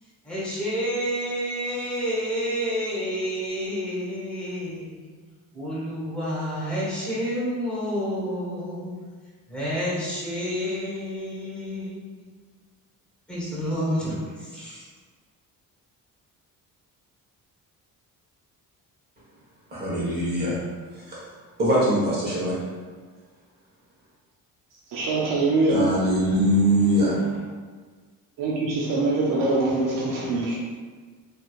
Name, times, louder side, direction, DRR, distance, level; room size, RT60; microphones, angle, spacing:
voice 1, 0.0-5.1 5.5-9.0 9.5-12.3 13.3-14.9, equal, 5° left, -9 dB, 1.0 m, -29 dB
voice 2, 19.7-20.6 21.0-21.2 21.6-22.6 25.7-27.1, equal, 30° right, -8 dB, 1.4 m, -22 dB
voice 3, 24.9-25.9 28.4-30.6, right 2 dB, 65° right, -5 dB, 0.7 m, -23 dB
4.5 x 3.2 x 2.4 m, 1.5 s
cardioid pair, 175°, 35 cm